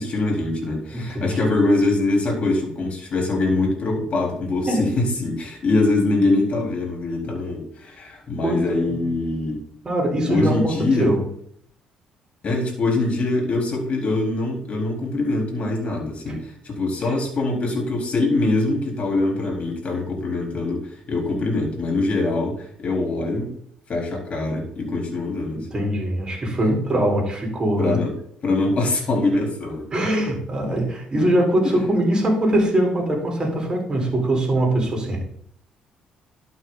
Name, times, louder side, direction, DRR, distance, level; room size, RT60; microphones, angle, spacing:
voice 1, 0.0-9.6 10.3-11.1 12.4-20.8 21.1-23.5 23.9-25.6 27.8-28.1 28.4-29.9 31.6-31.8, left 2 dB, 50° left, 1 dB, 3.9 m, -23 dB
voice 2, 0.9-1.3 4.7-4.9 8.4-8.8 9.8-11.2 25.7-28.0 29.9-35.2, right 1 dB, 30° right, -1 dB, 4.3 m, -22 dB
11.5 x 6.1 x 4.0 m, 0.65 s
cardioid pair, 80°, 3 cm